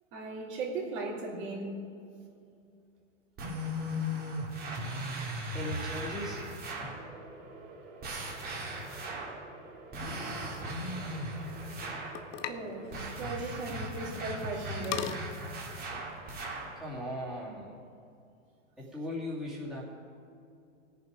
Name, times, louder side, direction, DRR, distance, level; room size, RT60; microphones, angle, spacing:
voice 1, 0.1-1.8 12.5-15.2, right 3 dB, 45° right, -3 dB, 3.0 m, -37 dB
sound 1, 3.4-7.0 8.0-9.4 9.9-12.2 12.9-16.8, equal, 25° right, 2.3 m, -37 dB
voice 2, 5.5-6.5 6.8-7.0 16.8-17.8 18.8-19.8, left 1 dB, ahead, -7 dB, 2.5 m, -38 dB
sound 2, 6.9-13.1, right 3 dB, 75° right, 3.2 m, -50 dB
sound 3, 10.5-16.8, left 10 dB, 20° left, 0.3 m, -44 dB
18.5 x 6.9 x 5.1 m, 2.5 s
hypercardioid pair, 130°, 37 cm